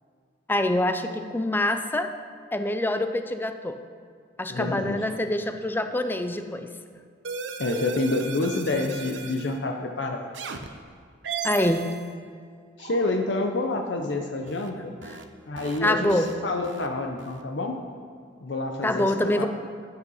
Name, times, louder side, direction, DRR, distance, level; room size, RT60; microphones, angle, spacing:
voice 1, 0.5-2.1 2.5-3.8 4.4-7.0 11.4-11.9 15.1-15.2 15.8-16.4 18.8-19.5, left 1 dB, 10° left, 8 dB, 0.5 m, -25 dB
voice 2, 4.5-5.0 7.6-10.3 12.8-15.0 15.5-17.8 18.4-19.5, left 2 dB, 70° left, 3 dB, 0.7 m, -28 dB
sound 1, 7.2-9.5 10.3-10.7 11.2-12.1 12.8-13.2 14.5-14.7 15.0-15.2 15.6-15.8 16.1-16.3 16.6-16.9 17.2-17.4, right 6 dB, 85° right, 0.7 m, -36 dB
8.3 x 8.0 x 5.5 m, 2.1 s
head